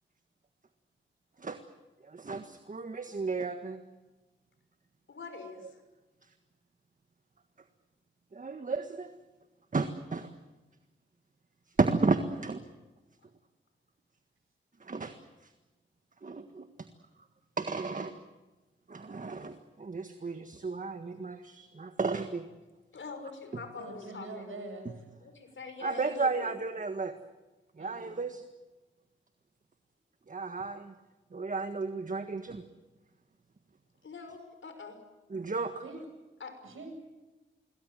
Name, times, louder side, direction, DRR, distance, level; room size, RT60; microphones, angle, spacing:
voice 1, 2.0-3.8 5.6-5.7 8.3-9.1 9.7-10.3 11.8-12.6 14.8-15.2 15.4-15.5 16.2-16.6 17.6-18.1 18.9-22.4 23.5-23.6 25.8-27.2 27.8-28.4 30.3-30.9 31.3-32.6 35.3-35.8, right 4 dB, 40° right, 8 dB, 1.7 m, -33 dB
voice 2, 5.1-5.6 22.9-24.5 25.2-26.5 34.0-34.9 36.4-36.5, left 4 dB, 70° left, 7 dB, 5.9 m, -44 dB
voice 3, 23.8-24.9 27.8-28.1 35.8-36.0 36.6-36.9, right 2 dB, 80° right, 4 dB, 8.0 m, -43 dB
26.5 x 22.0 x 7.7 m, 1.2 s
cardioid pair, 65°, 21 cm